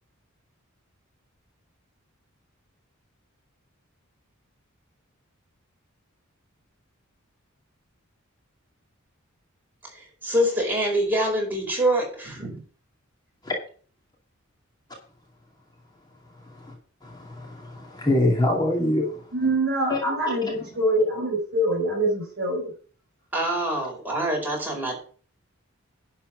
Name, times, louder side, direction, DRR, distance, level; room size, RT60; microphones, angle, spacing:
voice 1, 9.8-12.6 23.3-25.0, right 1 dB, 10° right, -1 dB, 4.6 m, -25 dB
voice 2, 17.0-19.2 19.9-20.0, left 1 dB, 20° left, -1 dB, 2.4 m, -24 dB
voice 3, 19.3-22.7, right 1 dB, 50° right, 3 dB, 5.1 m, -24 dB
11.5 x 4.4 x 7.4 m, 0.42 s
head